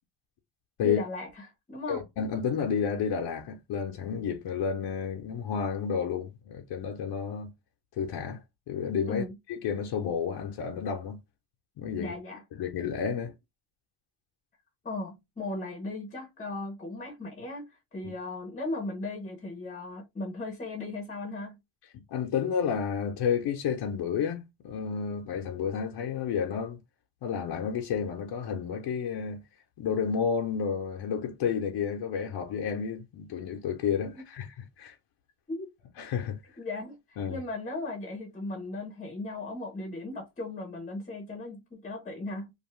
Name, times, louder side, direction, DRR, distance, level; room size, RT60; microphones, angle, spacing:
voice 1, 0.8-2.0 9.1-9.4 12.0-12.4 14.8-21.6 34.0-34.1 35.5-35.7 36.6-42.5, left 2 dB, 20° left, 0.7 m, -37 dB
voice 2, 1.9-7.5 8.0-9.2 9.5-11.2 11.8-12.1 12.5-13.3 21.9-26.8 27.2-29.4 29.8-34.5 34.8-35.0 36.0-36.4 37.2-37.4, left 7 dB, 90° left, 0.7 m, -31 dB
2.6 x 2.3 x 3.1 m
wide cardioid pair, 180°, 40 cm